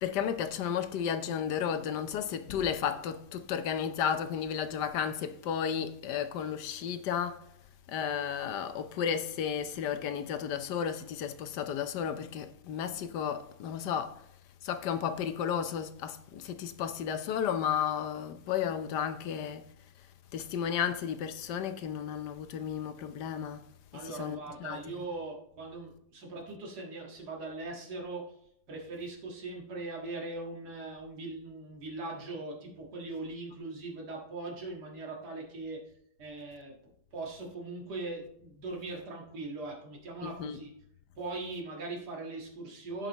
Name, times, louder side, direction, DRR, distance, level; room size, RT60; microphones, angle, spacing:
voice 1, 0.0-7.4 7.9-14.2 14.6-19.7 20.3-23.6 23.9-24.8 40.2-40.6, left 8 dB, 85° left, 1.4 m, -33 dB
voice 2, 23.9-28.4 28.7-35.8 36.2-36.8 37.1-40.7 41.2-43.1, right 3 dB, 75° right, 2.3 m, -40 dB
16.0 x 5.6 x 3.0 m
omnidirectional pair, 1.8 m